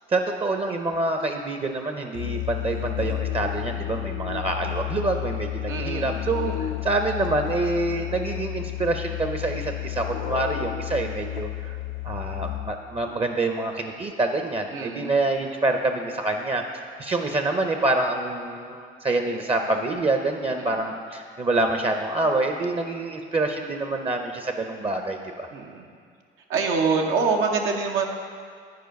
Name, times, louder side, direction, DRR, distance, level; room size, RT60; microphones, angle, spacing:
voice 1, 0.1-11.8 12.0-25.5, right 2 dB, 30° right, 5 dB, 0.5 m, -26 dB
Musical instrument, 2.1-12.9, left 15 dB, 80° left, 0.4 m, -31 dB
voice 2, 5.7-6.1 6.5-6.7 14.7-15.1 20.5-20.9 25.5-25.9 26.5-28.1, right 4 dB, 90° right, 2 dB, 0.8 m, -26 dB
9.3 x 4.5 x 5.1 m, 2.1 s
cardioid pair, 90°, 20 cm